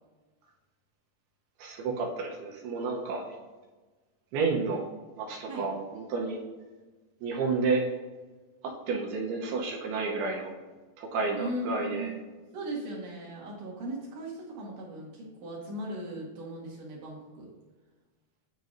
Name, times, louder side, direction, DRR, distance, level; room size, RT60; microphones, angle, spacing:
voice 1, 1.6-3.2 4.3-4.8 5.2-6.4 7.2-7.8 8.9-10.5 11.0-12.1, right 4 dB, 75° right, -1 dB, 2.7 m, -30 dB
voice 2, 11.4-12.2 12.5-17.5, right 1 dB, 55° right, -5 dB, 2.2 m, -38 dB
10.5 x 4.6 x 2.7 m, 1.3 s
omnidirectional pair, 5.0 m